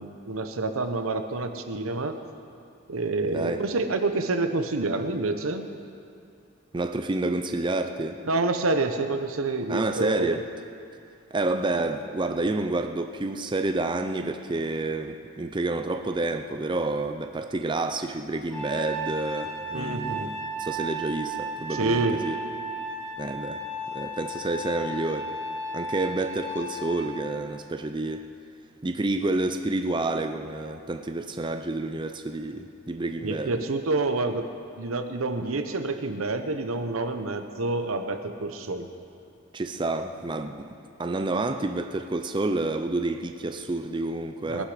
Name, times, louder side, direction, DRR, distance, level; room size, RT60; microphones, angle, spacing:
voice 1, 0.0-2.2 2.9-5.7 8.2-10.4 19.7-20.3 21.7-22.2 33.2-34.4 34.8-38.9 44.5-44.7, right 2 dB, 90° right, 8 dB, 1.0 m, -28 dB
voice 2, 3.3-3.6 6.7-8.2 9.7-10.4 11.3-22.4 23.2-23.6 23.9-25.3 25.7-28.2 28.8-33.7 39.5-40.7 41.0-44.7, right 2 dB, 25° right, 7 dB, 0.5 m, -29 dB
Trumpet, 18.5-27.1, right 1 dB, 5° left, 2.3 m, -34 dB
19.0 x 11.5 x 5.0 m, 2.5 s
head